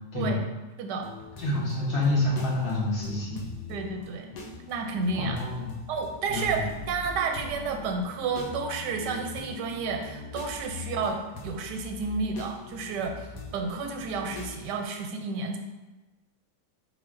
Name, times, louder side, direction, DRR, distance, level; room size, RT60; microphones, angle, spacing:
sound 1, 1.0-14.7, left 3 dB, 80° left, 1.2 m, -42 dB
voice 1, 1.4-3.4 5.1-5.7 6.3-6.7, left 2 dB, 60° left, -7 dB, 1.8 m, -28 dB
voice 2, 3.7-4.3 4.7-5.4 5.9-11.2 11.4-15.6, right 4 dB, 90° right, 4 dB, 1.2 m, -31 dB
4.7 x 3.8 x 2.5 m, 1.1 s
omnidirectional pair, 1.8 m